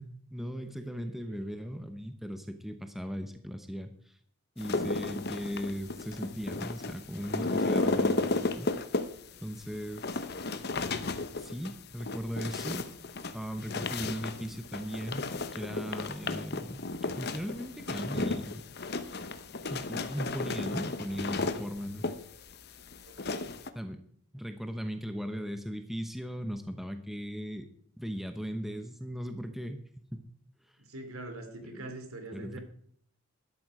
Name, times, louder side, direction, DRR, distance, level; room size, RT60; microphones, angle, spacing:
voice 1, 0.0-4.2 4.6-8.7 9.4-10.3 11.4-12.9 13.3-16.9 17.2-18.6 19.0-19.1 19.7-22.1 23.7-24.0 24.3-27.7 28.0-30.3 31.6-31.9 32.3-32.6, equal, ahead, 7 dB, 0.9 m, -38 dB
voice 2, 0.9-1.4 23.1-23.5 30.8-32.6, right 2 dB, 80° right, 6 dB, 2.9 m, -44 dB
sound 1, 4.6-23.7, left 3 dB, 45° left, 0.9 m, -34 dB
13.0 x 12.0 x 4.9 m, 0.62 s
head